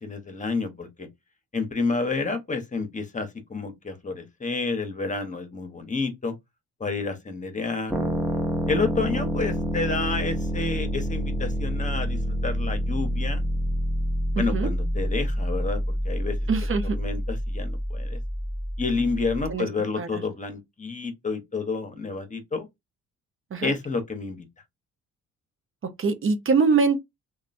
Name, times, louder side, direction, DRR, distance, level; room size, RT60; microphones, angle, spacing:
voice 1, 0.0-1.1 1.5-6.3 6.8-7.9 8.7-13.4 14.4-16.4 16.9-18.2 18.8-22.7 23.6-24.4, left 4 dB, 25° left, 1.0 m, -29 dB
sound 1, 7.9-19.5, equal, 5° right, 0.8 m, -27 dB
voice 2, 14.4-14.7 16.5-17.0 19.5-19.7 19.9-20.2 23.5-23.7 26.0-27.0, right 4 dB, 45° right, 0.7 m, -23 dB
2.9 x 2.4 x 2.5 m
cardioid pair, 90°, 30 cm